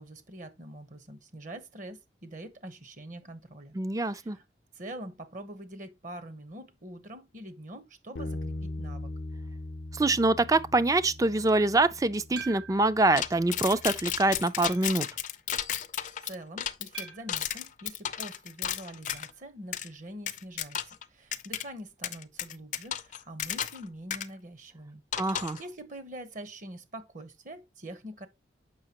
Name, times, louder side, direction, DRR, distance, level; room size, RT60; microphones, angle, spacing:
voice 1, 0.0-3.7 4.1-4.4 4.7-9.1 16.2-28.3, right 1 dB, 45° right, 1.0 m, -44 dB
voice 2, 3.7-4.4 9.9-15.1 25.2-25.6, right 2 dB, 20° right, 0.4 m, -25 dB
Bass guitar, 8.2-14.4, left 1 dB, 80° left, 0.7 m, -41 dB
sound 1, 12.4-13.0 13.7-13.8 14.6-15.0 16.9-17.4 19.1-19.4 19.6-19.7 20.0-20.1 22.1-22.2, right 6 dB, 75° right, 2.0 m, -45 dB
sound 2, 13.2-19.3 19.7-19.9 20.3-21.0 21.3-21.6 22.0-23.8 24.1-24.3 25.1-25.6, left 10 dB, 45° left, 0.5 m, -33 dB
7.5 x 5.8 x 2.9 m
head